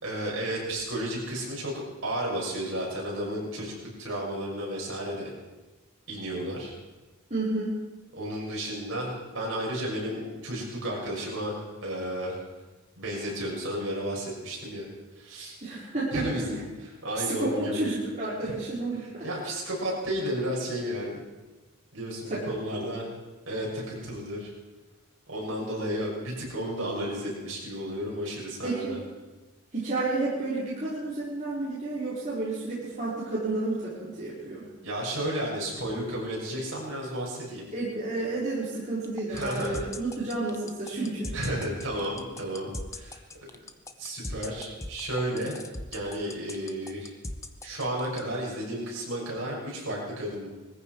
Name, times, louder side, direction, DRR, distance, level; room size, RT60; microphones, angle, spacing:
voice 1, 0.0-1.7 2.0-5.3 6.1-6.7 8.2-12.4 13.0-14.9 15.1-15.6 16.1-17.8 18.4-18.5 19.2-21.2 21.9-23.1 23.4-24.5 25.3-29.0 34.8-37.7 39.3-39.8 41.3-43.2 44.0-45.6 45.9-47.1 47.6-50.5, right 1 dB, 55° right, -3 dB, 6.5 m, -32 dB
voice 2, 7.3-7.8 15.6-16.3 17.1-19.2 22.3-22.4 22.7-22.9 28.6-29.0 29.7-34.6 37.7-41.3, right 2 dB, 35° right, -9 dB, 4.3 m, -31 dB
sound 1, 39.0-48.2, left 2 dB, 15° left, 0.7 m, -38 dB
20.5 x 14.5 x 4.7 m, 1.2 s
head